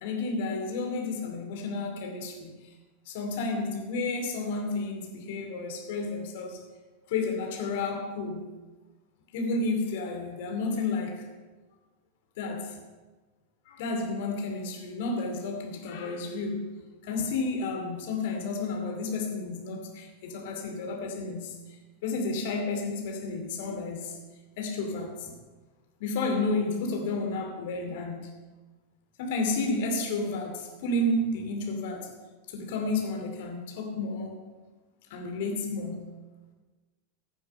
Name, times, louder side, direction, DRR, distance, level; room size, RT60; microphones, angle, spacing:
voice 1, 0.0-2.7 3.1-6.6 7.1-8.4 9.3-11.3 12.4-12.8 13.7-16.7 17.0-21.5 22.0-24.2 24.6-25.3 26.0-28.3 29.2-32.1 32.5-34.4 35.1-36.1, left 3 dB, 50° left, 3 dB, 2.5 m, -31 dB
15.0 x 7.8 x 5.6 m, 1.2 s
figure-of-eight pair, 90°, 0 cm